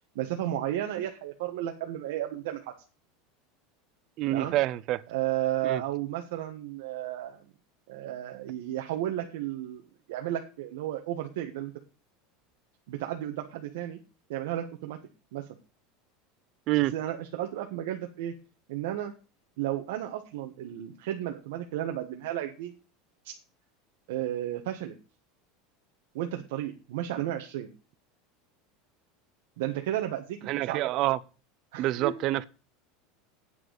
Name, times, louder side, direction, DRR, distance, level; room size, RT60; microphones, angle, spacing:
voice 1, 0.1-2.7 4.3-4.5 5.1-7.4 7.9-9.8 10.1-11.7 12.9-14.0 14.3-15.0 15.3-15.4 16.9-18.3 18.7-19.1 19.6-22.7 24.1-24.9 26.1-27.7 29.6-30.4 30.7-30.8 31.7-32.1, right 12 dB, 70° right, 1.3 m, -33 dB
voice 2, 4.2-5.0 5.6-5.8 16.7-16.9 30.5-31.2 31.8-32.5, right 16 dB, 35° right, 0.5 m, -27 dB
9.1 x 6.4 x 6.7 m
supercardioid pair, 175°, 0 cm